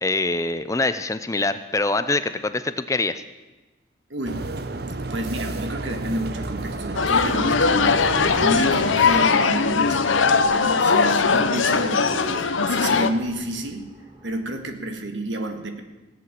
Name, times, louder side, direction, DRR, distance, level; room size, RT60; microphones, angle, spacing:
voice 1, 0.0-3.2, left 3 dB, 15° left, 12 dB, 0.5 m, -24 dB
voice 2, 4.1-4.5 5.0-13.9 14.2-15.8, right 1 dB, 75° right, 6 dB, 1.7 m, -30 dB
sound 1, 4.2-9.3, right 2 dB, 55° right, 0.7 m, -31 dB
sound 2, 5.9-14.4, equal, 25° right, 5.2 m, -47 dB
sound 3, 7.0-13.1, left 5 dB, 90° left, 0.8 m, -20 dB
17.0 x 8.4 x 7.6 m, 1.2 s
head